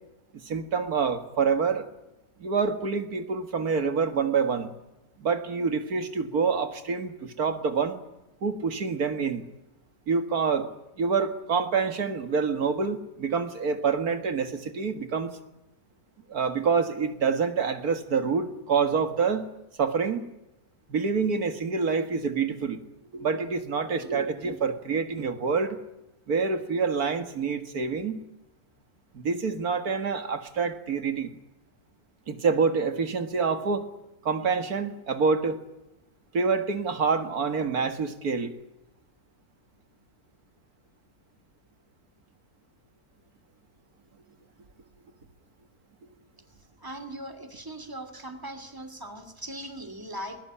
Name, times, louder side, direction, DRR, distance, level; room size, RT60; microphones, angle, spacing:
voice 1, 0.4-1.9 2.4-4.7 5.2-8.0 8.4-9.4 10.1-10.7 11.0-15.3 16.3-19.5 19.8-20.2 20.9-22.8 23.1-25.8 26.3-28.2 29.1-31.3 32.3-33.9 34.2-35.6 36.3-38.5, right 5 dB, 80° right, 8 dB, 2.3 m, -27 dB
voice 2, 46.8-50.4, right 1 dB, 15° right, 9 dB, 2.7 m, -39 dB
20.5 x 20.5 x 9.9 m, 0.92 s
omnidirectional pair, 1.6 m